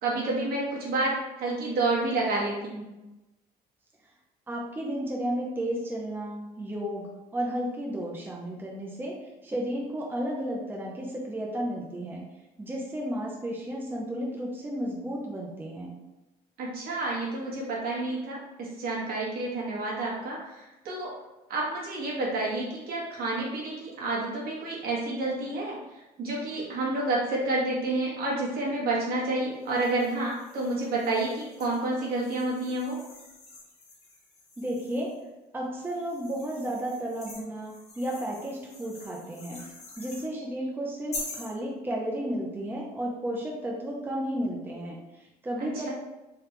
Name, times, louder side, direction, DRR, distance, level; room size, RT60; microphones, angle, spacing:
voice 1, 0.0-2.9 16.6-21.1 21.5-25.8 26.2-33.0 45.6-45.9, right 2 dB, 65° right, -4 dB, 1.2 m, -29 dB
voice 2, 4.5-12.2 12.6-16.0 34.6-35.1 35.5-39.6 40.0-45.9, equal, 10° right, -2 dB, 0.6 m, -33 dB
sound 1, 29.6-35.2 35.8-40.3 41.1-41.5, left 3 dB, 40° left, 1.0 m, -45 dB
3.4 x 2.3 x 3.1 m, 1.0 s
cardioid pair, 110°, 17 cm